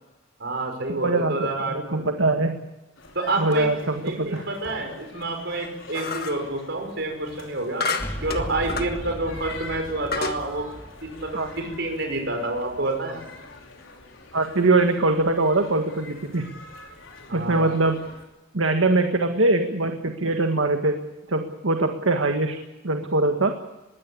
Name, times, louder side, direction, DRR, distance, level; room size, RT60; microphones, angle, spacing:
voice 1, 0.4-2.1 3.1-3.7 4.0-7.9 8.2-10.7 11.0-13.2 17.3-17.7, right 2 dB, 60° right, 3 dB, 5.7 m, -28 dB
voice 2, 1.0-2.6 3.4-4.4 11.3-11.5 14.3-16.5 17.3-18.0 18.5-21.0 21.3-22.6 22.8-23.6, right 2 dB, 85° right, 5 dB, 1.8 m, -22 dB
sound 1, 3.0-18.3, left 3 dB, 80° left, 4.8 m, -45 dB
sound 2, 5.9-6.5 7.8-9.0 9.5-9.6 10.1-10.4, left 4 dB, 50° left, 1.7 m, -29 dB
sound 3, 7.9-13.7, equal, 10° left, 3.4 m, -38 dB
21.5 x 17.0 x 8.7 m, 1.0 s
head